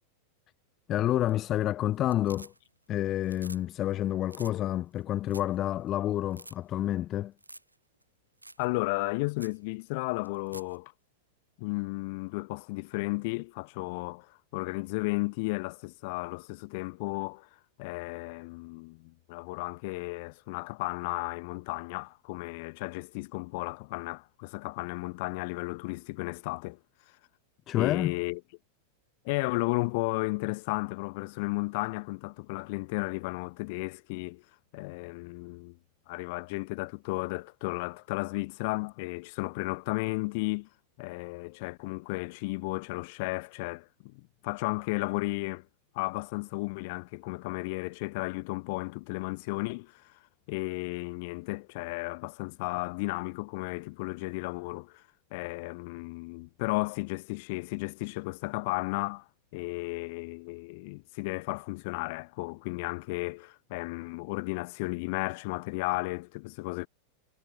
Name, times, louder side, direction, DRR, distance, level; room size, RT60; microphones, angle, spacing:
voice 1, 0.9-2.5 2.9-7.3 27.7-28.1, left 13 dB, 30° left, 0.4 m, -29 dB
sound 1, 1.1-1.6 1.9-2.9 3.2-3.6 3.9-4.0 4.3-4.5 5.0-5.1 5.3-5.6 5.9-6.0 6.3-6.6 7.4-7.7 8.0-8.1 8.4-8.7 9.0-9.1 9.4-9.6 10.2-10.8 12.9-13.0, right 2 dB, 85° right, 0.5 m, -48 dB
voice 2, 8.6-10.9 11.6-17.5 17.8-26.8 27.7-28.4 29.2-34.4 34.7-35.8 36.1-40.7 41.0-45.7 45.9-50.1 50.5-55.0 55.3-59.2 59.5-66.9, left 26 dB, 50° left, 0.9 m, -34 dB
figure-of-eight pair, 90°, 0 cm